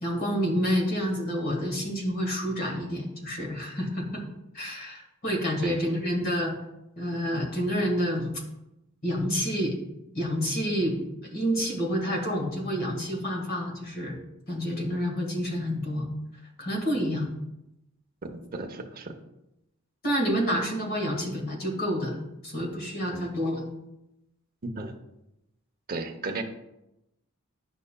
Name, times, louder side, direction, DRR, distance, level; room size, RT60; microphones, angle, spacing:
voice 1, 0.0-4.2 4.5-6.5 7.0-8.3 9.0-9.8 10.2-11.0 11.3-14.2 14.5-16.1 16.6-17.3 20.0-23.7, equal, 45° left, 0 dB, 1.6 m, -28 dB
voice 2, 18.5-19.1 23.1-23.2 24.8-25.0 25.9-26.4, right 3 dB, 45° right, 4 dB, 0.8 m, -34 dB
10.0 x 5.4 x 2.2 m, 0.88 s
head